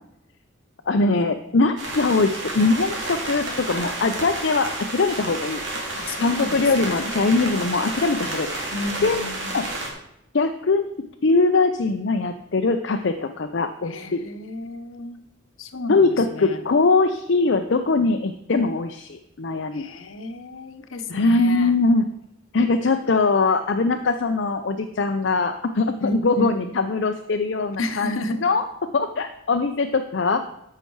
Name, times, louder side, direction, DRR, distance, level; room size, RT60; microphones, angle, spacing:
voice 1, 0.9-5.6 6.2-8.7 9.0-9.2 9.5-9.7 10.3-10.9 11.2-14.2 15.9-19.8 21.1-22.0 22.5-28.6 28.9-30.4, left 3 dB, 60° left, 6 dB, 0.6 m, -21 dB
sound 1, 1.8-9.9, right 2 dB, 65° right, 2.5 m, -31 dB
voice 2, 5.9-7.2 8.7-9.5 13.9-15.2 15.6-16.6 19.7-21.8 26.0-26.7 27.8-28.4, left 2 dB, 85° left, 8 dB, 1.0 m, -32 dB
13.5 x 5.8 x 4.6 m, 0.79 s
head